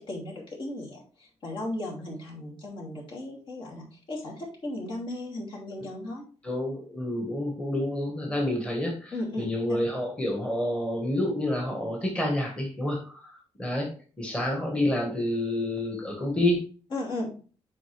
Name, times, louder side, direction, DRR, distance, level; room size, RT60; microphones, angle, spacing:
voice 1, 0.0-6.2 9.1-9.8 16.9-17.3, left 1 dB, 50° left, -2 dB, 2.8 m, -36 dB
voice 2, 6.4-16.7, left 1 dB, 10° left, 0 dB, 1.6 m, -29 dB
7.6 x 4.9 x 3.4 m, 0.38 s
cardioid pair, 140°, 11 cm